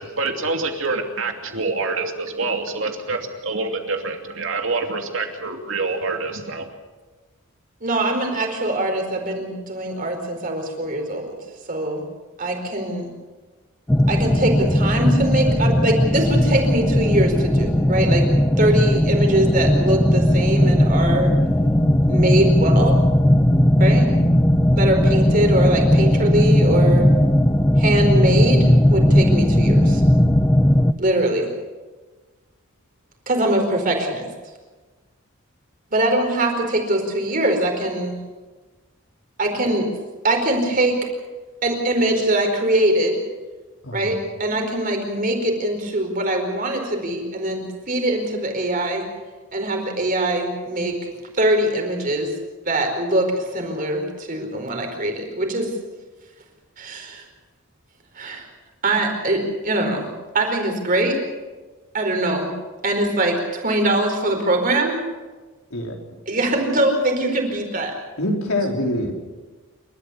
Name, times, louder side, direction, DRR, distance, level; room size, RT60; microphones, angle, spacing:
voice 1, 0.0-6.7, right 3 dB, 60° right, 4 dB, 2.7 m, -26 dB
voice 2, 7.8-11.4 11.7-12.0 12.4-13.1 14.1-18.2 18.6-21.3 22.1-23.0 23.8-24.1 24.8-27.1 27.8-30.0 31.0-31.5 33.3-34.3 35.9-38.2 39.4-39.9 40.2-41.0 41.6-43.2 43.9-49.0 49.5-51.0 51.4-52.3 52.7-55.7 56.8-57.2 58.1-58.4 58.8-60.1 60.3-61.2 61.9-62.5 62.8-65.0 66.3-67.9, right 1 dB, 40° right, 3 dB, 4.7 m, -22 dB
sound 1, 13.9-30.9, equal, 10° left, 0.6 m, -17 dB
voice 3, 43.8-44.2 65.7-66.0 68.2-69.1, left 1 dB, 75° left, 1 dB, 4.7 m, -24 dB
29.0 x 13.5 x 8.3 m, 1.3 s
head